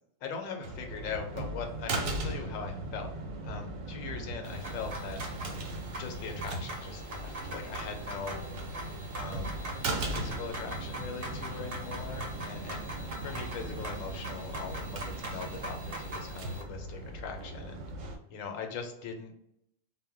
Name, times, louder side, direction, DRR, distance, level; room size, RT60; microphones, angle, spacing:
voice 1, 0.2-3.1 3.4-5.2 5.9-8.5 9.1-9.7 10.1-12.9 13.2-17.8 18.3-19.3, left 5 dB, 90° left, 4 dB, 1.0 m, -41 dB
sound 1, 0.6-18.2, right 2 dB, 85° right, 1.0 m, -38 dB
sound 2, 4.4-16.6, right 1 dB, 55° right, 0.7 m, -42 dB
2.1 x 2.1 x 3.5 m, 0.77 s
omnidirectional pair, 1.3 m